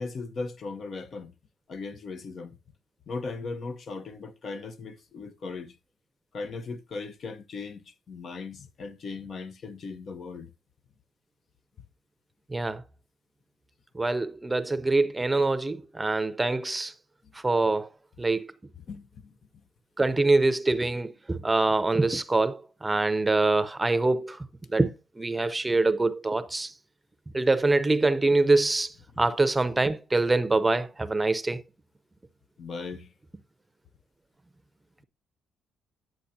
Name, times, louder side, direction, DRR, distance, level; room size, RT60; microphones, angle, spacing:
voice 1, 0.0-1.3 1.7-2.6 3.1-5.7 6.3-10.5 18.9-19.3 32.6-33.1, left 4 dB, 50° left, 0.8 m, -38 dB
voice 2, 13.9-16.9 17.4-17.9 18.2-18.5 20.0-24.4 24.7-26.7 27.3-31.6, right 2 dB, 20° right, 0.7 m, -24 dB
10.0 x 7.7 x 2.7 m
supercardioid pair, 75°, 0 cm